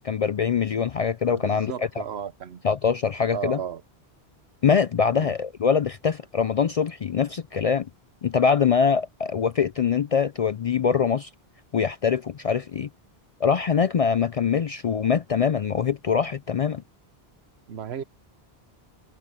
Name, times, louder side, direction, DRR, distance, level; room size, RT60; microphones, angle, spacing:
voice 1, 0.0-2.0 2.6-3.6 4.6-7.9 8.2-11.3 11.7-12.9 13.4-16.8, left 6 dB, 55° left, 0.4 m, -23 dB
voice 2, 1.4-2.6 3.3-3.8 5.1-5.3 17.7-18.0, right 8 dB, 85° right, 1.1 m, -34 dB
omnidirectional pair, 1.0 m